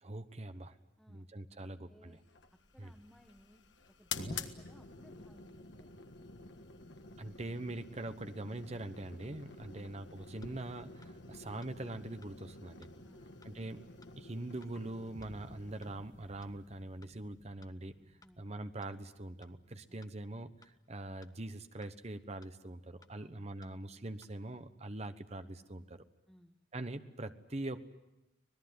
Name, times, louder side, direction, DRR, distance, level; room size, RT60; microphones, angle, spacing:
voice 1, 0.0-0.8 1.1-2.2 2.8-2.9 4.2-4.4 7.2-12.9 13.4-13.9 14.2-18.0 18.4-26.0 26.7-27.8, right 2 dB, 35° right, 10 dB, 1.1 m, -43 dB
voice 2, 1.6-2.2 2.7-3.6 4.0-5.9 9.6-9.9 13.0-13.3 18.2-18.4 19.9-20.1 23.2-23.5 26.3-26.5, equal, ahead, 3 dB, 1.4 m, -62 dB
sound 1, 2.2-17.5, left 4 dB, 75° left, 1.6 m, -49 dB
sound 2, 10.4-10.5 11.0-11.1 11.6-11.7 12.2-12.3 12.8-12.9 13.4-13.5 14.0-14.1 14.6-14.7 15.2-15.3 15.8-15.9 16.4-16.5 17.0-17.1 17.6-17.7 18.2-18.3 18.8-18.9 19.4-19.5 20.0-20.1 20.6-20.7 21.2-21.3 21.8-21.9 22.4-22.5 23.0-23.1 23.6-23.7 24.2-24.3, left 4 dB, 20° left, 1.0 m, -62 dB
sound 3, 15.1-21.1, right 1 dB, 50° right, 1.7 m, -61 dB
25.5 x 19.0 x 9.5 m, 0.96 s
head